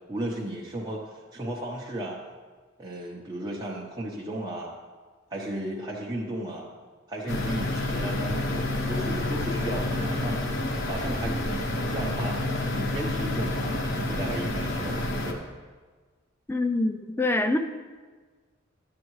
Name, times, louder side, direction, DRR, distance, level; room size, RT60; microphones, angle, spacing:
voice 1, 0.1-2.2 2.8-4.8 5.3-6.7 7.1-10.4 10.9-15.5, right 1 dB, 20° right, -5 dB, 0.9 m, -35 dB
sound 1, 7.3-15.3, left 1 dB, 65° left, 1.0 m, -29 dB
voice 2, 16.5-17.6, left 2 dB, 10° left, 6 dB, 0.3 m, -25 dB
11.0 x 8.4 x 3.1 m, 1.4 s
head